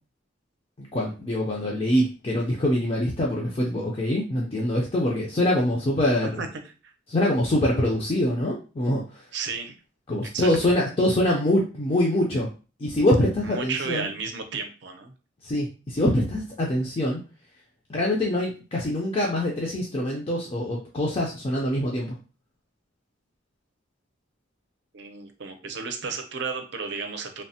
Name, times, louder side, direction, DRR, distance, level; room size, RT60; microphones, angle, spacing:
voice 1, 0.8-6.4 7.1-9.2 10.1-12.5 12.8-14.1 15.4-17.2 17.9-22.2, left 1 dB, 30° left, -2 dB, 0.4 m, -24 dB
voice 2, 9.3-9.7 10.3-10.5 13.4-15.1 24.9-27.4, right 5 dB, 65° right, 5 dB, 0.5 m, -33 dB
3.1 x 2.0 x 2.7 m, 0.34 s
head